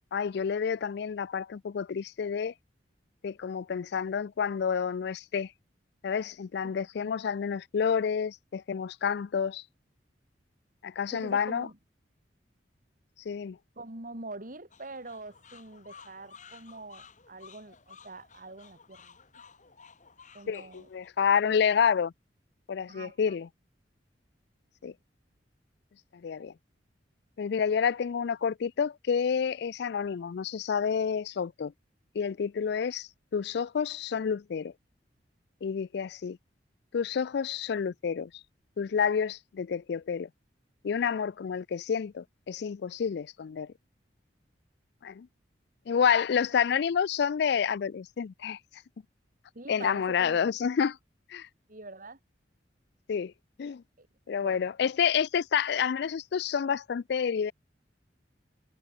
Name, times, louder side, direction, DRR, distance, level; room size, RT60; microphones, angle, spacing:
voice 1, 0.1-2.5 3.2-5.5 6.0-9.6 10.8-11.7 13.3-13.6 20.5-22.1 22.7-23.5 24.8-24.9 26.2-26.5 27.4-31.7 32.1-34.7 35.6-36.4 36.9-38.3 38.8-40.3 40.8-43.7 45.0-45.3 45.9-48.6 49.7-51.0 51.3-51.5 53.1-53.3 53.6-53.8 54.3-57.5, left 7 dB, 65° left, 0.4 m, -29 dB
voice 2, 11.1-11.8 13.8-19.2 20.3-20.9 22.9-23.4 49.5-50.4 51.7-52.2 54.0-54.1 54.4-54.6, right 2 dB, 50° right, 4.4 m, -44 dB
sound 1, 14.7-21.1, left 6 dB, 45° left, 3.4 m, -54 dB
head